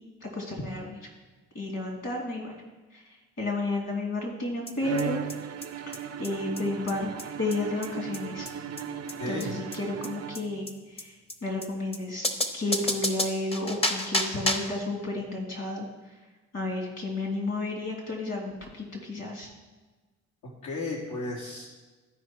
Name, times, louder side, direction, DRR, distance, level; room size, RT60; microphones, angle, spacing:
voice 1, 0.2-1.0 1.5-2.5 2.9-5.2 5.9-6.0 6.2-7.1 7.4-8.5 9.3-12.2 12.5-15.9 16.5-19.5, left 2 dB, 55° left, 1 dB, 3.0 m, -32 dB
sound 1, 4.7-4.8 5.0-5.1 5.3-5.4 5.6-5.7 5.9-6.0 6.2-6.3 6.6-6.7 6.9-7.0 7.2-7.3 7.5-7.6 7.8-7.9 8.1-8.2 8.5-8.6 8.8-8.9 9.1-9.2 9.4-9.5 9.7-9.8 10.0-10.1 10.3-10.4 10.7-10.8 11.0-11.1 11.3-11.4 11.6-11.7 11.9-12.0 12.2-14.8, left 1 dB, 20° left, 1.0 m, -30 dB
Bowed string instrument, 4.8-10.8, right 8 dB, 55° right, 0.6 m, -37 dB
voice 2, 9.2-9.5 20.6-21.7, left 2 dB, 75° left, -6 dB, 2.4 m, -33 dB
13.0 x 5.0 x 4.6 m, 1.2 s
cardioid pair, 90°, 30 cm